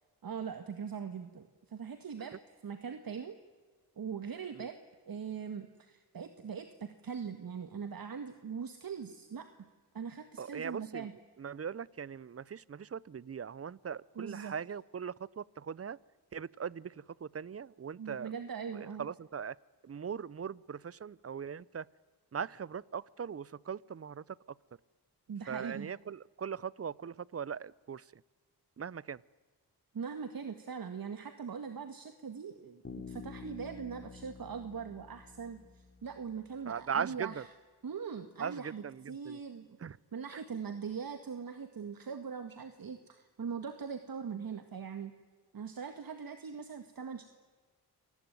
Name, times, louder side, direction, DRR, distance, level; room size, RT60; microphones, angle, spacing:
voice 1, 0.2-2.3 2.6-3.4 4.0-4.8 5.1-9.5 9.9-11.1 14.2-14.5 18.0-19.1 25.3-25.9 29.9-37.5 37.8-39.7 40.1-45.1 45.5-47.3, right 6 dB, 60° right, 8 dB, 1.9 m, -41 dB
voice 2, 10.4-11.1 11.4-16.0 16.3-18.3 18.7-19.6 19.8-21.9 22.3-24.4 25.5-28.1 28.8-29.2 36.7-37.4 38.4-39.4 39.8-40.0 40.3-40.4, right 7 dB, 35° right, 23 dB, 0.8 m, -40 dB
Bass guitar, 32.8-36.5, left 5 dB, 30° left, 3.7 m, -49 dB
27.0 x 19.5 x 9.4 m, 1.4 s
cardioid pair, 50°, 40 cm